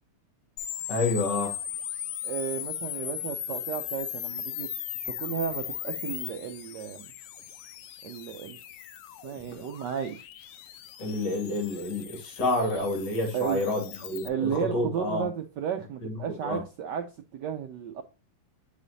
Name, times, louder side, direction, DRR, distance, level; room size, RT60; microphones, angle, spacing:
sound 1, 0.6-14.3, left 11 dB, 80° left, 1.6 m, -38 dB
voice 1, 0.9-1.5 11.0-15.3 16.0-16.6, left 2 dB, 50° left, 2.8 m, -29 dB
voice 2, 2.2-4.7 5.1-7.1 8.0-8.6 9.2-10.2 13.3-13.8 14.2-18.0, right 8 dB, 70° right, 1.0 m, -33 dB
7.5 x 5.0 x 2.6 m
omnidirectional pair, 2.4 m